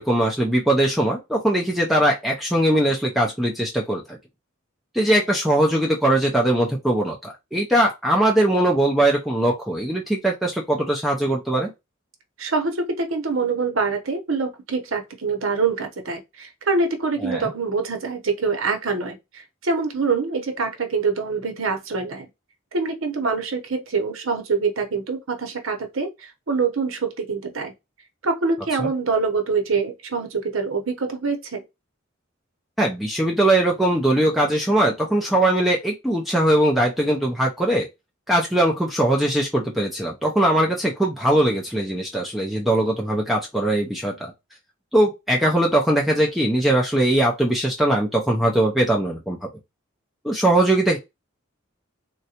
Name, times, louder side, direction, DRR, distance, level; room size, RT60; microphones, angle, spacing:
voice 1, 0.0-4.2 4.9-11.7 17.2-17.5 28.8-28.9 32.8-37.9 38.3-44.3 44.9-49.4 50.2-51.0, right 1 dB, ahead, 0.5 m, -20 dB
voice 2, 12.4-22.3 22.7-27.7 28.2-31.6, right 4 dB, 80° right, 0.9 m, -25 dB
3.8 x 2.2 x 2.8 m
head